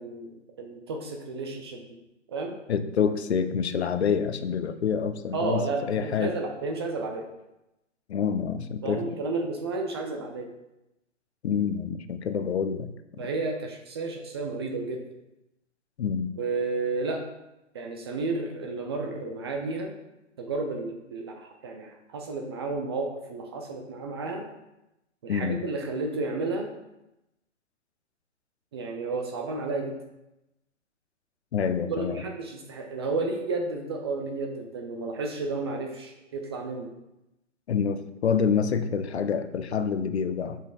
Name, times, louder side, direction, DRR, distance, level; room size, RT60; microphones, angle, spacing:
voice 1, 0.0-1.9 2.3-2.6 5.3-7.3 8.8-10.5 13.2-15.0 16.4-17.2 17.7-19.9 20.4-24.4 25.2-26.7 28.7-29.9 31.9-36.9, right 3 dB, 20° right, 2 dB, 0.4 m, -32 dB
voice 2, 2.7-5.6 5.9-6.4 8.1-9.2 11.4-12.9 16.0-16.3 25.3-25.6 31.5-32.2 37.7-40.6, left 7 dB, 60° left, 10 dB, 0.6 m, -27 dB
7.2 x 5.6 x 2.4 m, 0.93 s
figure-of-eight pair, 120°, 38 cm